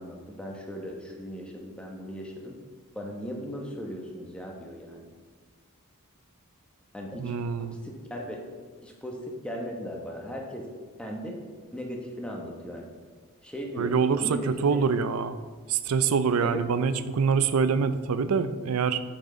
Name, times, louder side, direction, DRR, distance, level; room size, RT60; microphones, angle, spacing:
voice 1, 0.0-2.5 2.9-5.1 6.9-7.4 7.7-8.4 8.8-10.7 11.0-11.4 11.7-12.9 13.4-14.9 16.4-16.6, equal, 5° left, 0 dB, 1.0 m, -37 dB
voice 2, 7.2-7.8 13.8-15.4 15.7-19.0, right 5 dB, 80° right, 12 dB, 0.4 m, -25 dB
8.6 x 6.1 x 3.8 m, 1.5 s
head